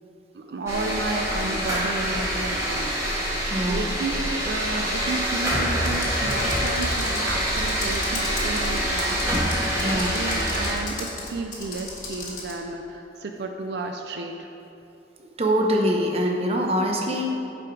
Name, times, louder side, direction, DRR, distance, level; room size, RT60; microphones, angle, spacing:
voice 1, 0.3-3.2 3.6-14.5, right 3 dB, 70° right, 3 dB, 0.4 m, -32 dB
sound 1, 0.7-10.7, equal, 15° right, 1.6 m, -25 dB
voice 2, 3.5-3.9 9.8-10.2 15.4-17.4, equal, 35° right, 1 dB, 0.7 m, -24 dB
Computer keyboard, 5.8-12.6, left 3 dB, 45° left, 1.4 m, -37 dB
8.4 x 4.9 x 4.7 m, 2.8 s
head